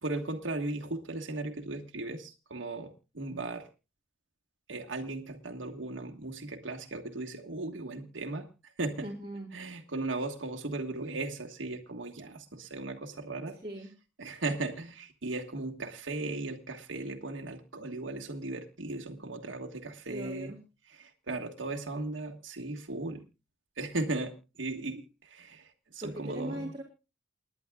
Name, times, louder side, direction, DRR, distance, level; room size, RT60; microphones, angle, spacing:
voice 1, 0.0-3.7 4.7-8.5 8.8-9.1 9.5-13.6 14.2-20.5 20.9-23.2 23.8-26.7, right 2 dB, 90° right, 2 dB, 1.5 m, -37 dB
voice 2, 9.0-9.5 13.6-13.9 20.1-20.6 26.0-26.8, right 1 dB, 30° right, -1 dB, 2.6 m, -39 dB
29.0 x 10.5 x 2.3 m, 0.29 s
head